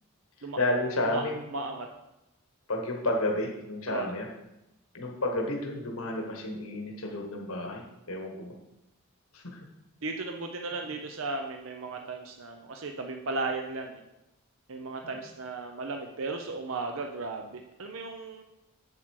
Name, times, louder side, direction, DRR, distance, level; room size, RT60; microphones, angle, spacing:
voice 1, 0.4-1.4 2.7-4.3 4.9-8.5 9.3-9.7 15.0-15.2, left 1 dB, 75° left, 1 dB, 1.3 m, -31 dB
voice 2, 1.5-1.9 3.9-4.1 10.0-14.0 14.7-18.4, right 3 dB, 65° right, 3 dB, 0.7 m, -35 dB
7.8 x 7.5 x 4.7 m, 0.90 s
head